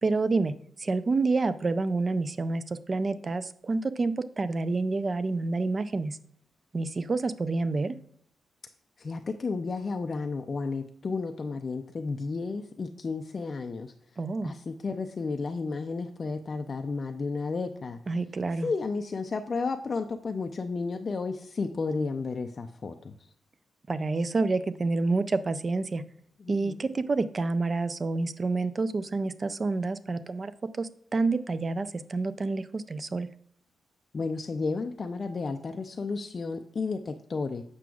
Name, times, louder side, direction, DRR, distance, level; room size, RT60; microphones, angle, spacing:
voice 1, 0.0-6.2 6.7-8.0 14.2-14.5 18.1-18.7 23.9-26.0 26.5-30.5 30.8-33.3, right 3 dB, 30° right, 13 dB, 0.4 m, -28 dB
voice 2, 9.0-13.9 14.4-18.0 18.6-23.1 26.4-26.8 34.1-37.6, left 4 dB, 35° left, 5 dB, 0.4 m, -32 dB
7.5 x 6.0 x 2.3 m, 0.65 s
wide cardioid pair, 130°, 0 cm